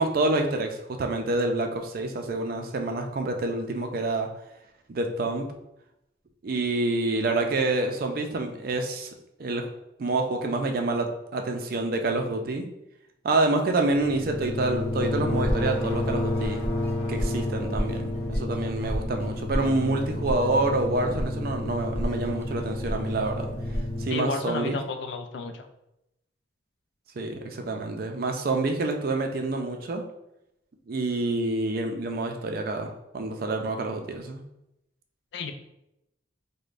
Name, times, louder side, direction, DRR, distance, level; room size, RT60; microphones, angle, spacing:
voice 1, 0.0-4.3 4.9-5.5 6.4-9.1 9.4-9.7 10.0-12.7 13.2-16.6 17.1-23.5 24.0-24.8 27.2-30.0 30.9-34.4, right 2 dB, 55° right, 4 dB, 0.4 m, -27 dB
sound 1, 13.9-24.1, left 1 dB, 35° left, 1.1 m, -29 dB
voice 2, 24.1-25.7 35.3-35.5, left 3 dB, 70° left, 6 dB, 0.4 m, -31 dB
5.0 x 2.1 x 2.5 m, 0.86 s
head